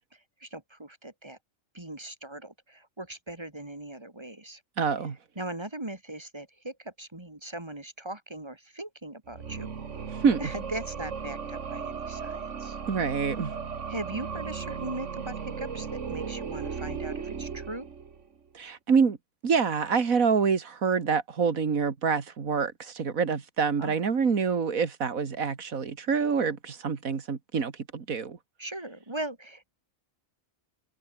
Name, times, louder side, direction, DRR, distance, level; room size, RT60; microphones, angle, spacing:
voice 1, 0.4-1.4 1.7-4.6 5.4-9.7 10.4-12.8 13.9-17.9 23.8-24.0 28.6-29.7, right 1 dB, 20° right, 2.4 m, -39 dB
voice 2, 4.8-5.2 10.1-10.5 12.9-13.5 18.5-19.2 19.4-28.4, right 5 dB, 85° right, 2.3 m, -26 dB
sound 1, 9.3-18.3, right 6 dB, 60° right, 1.9 m, -36 dB
omnidirectional pair, 1.4 m